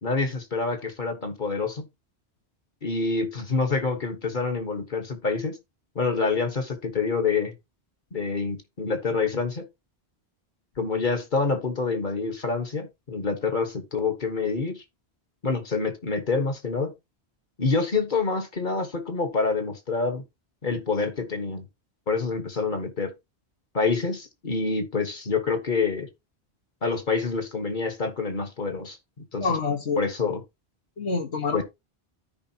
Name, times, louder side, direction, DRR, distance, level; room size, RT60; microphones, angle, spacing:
voice 1, 0.0-1.8 2.8-5.6 5.9-7.5 8.1-9.6 10.8-14.8 15.4-16.9 17.6-20.2 20.6-21.6 22.1-23.1 23.7-26.1 26.8-29.0 29.3-29.6 30.0-30.4 31.5-31.6, left 4 dB, 50° left, 1.5 m, -27 dB
voice 2, 29.4-30.0 31.0-31.6, left 5 dB, 80° left, 1.7 m, -26 dB
13.0 x 5.1 x 2.8 m
omnidirectional pair, 1.1 m